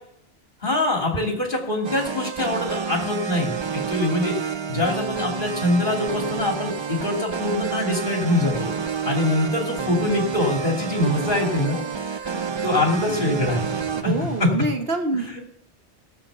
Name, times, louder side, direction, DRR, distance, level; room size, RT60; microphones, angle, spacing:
voice 1, 0.6-8.7 9.0-11.8 12.1-13.7 14.0-14.5 15.1-15.4, left 2 dB, 45° left, 1 dB, 2.9 m, -24 dB
sound 1, 1.8-14.0, right 6 dB, 40° right, 0.4 m, -29 dB
sound 2, 6.4-14.4, left 1 dB, 5° left, 7.5 m, -43 dB
voice 2, 13.9-15.4, right 2 dB, 55° right, 6 dB, 1.4 m, -26 dB
16.0 x 8.0 x 6.8 m, 0.73 s
omnidirectional pair, 1.2 m